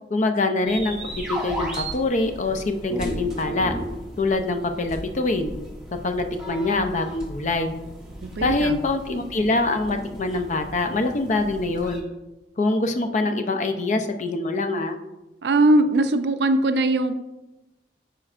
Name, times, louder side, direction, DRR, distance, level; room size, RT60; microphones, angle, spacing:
voice 1, 0.1-3.7 4.2-5.5 6.0-7.7 8.4-12.0 12.6-15.0, left 2 dB, 45° left, 6 dB, 0.5 m, -24 dB
sound 1, 0.7-12.0, right 1 dB, 5° right, 1.1 m, -35 dB
voice 2, 8.2-8.8 15.4-17.1, right 2 dB, 65° right, 10 dB, 0.4 m, -20 dB
11.0 x 4.4 x 2.5 m, 1.0 s
head